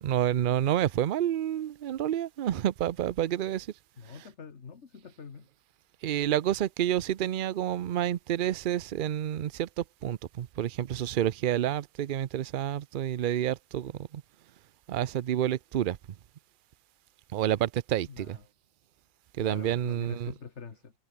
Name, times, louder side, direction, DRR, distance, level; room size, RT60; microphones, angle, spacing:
voice 1, 0.0-3.7 6.0-14.2 14.9-16.0 17.3-18.4 19.4-20.3, right 11 dB, 55° right, 0.6 m, -29 dB
voice 2, 4.0-5.5 18.1-18.4 19.4-20.9, left 5 dB, 55° left, 1.8 m, -45 dB
omnidirectional pair, 1.4 m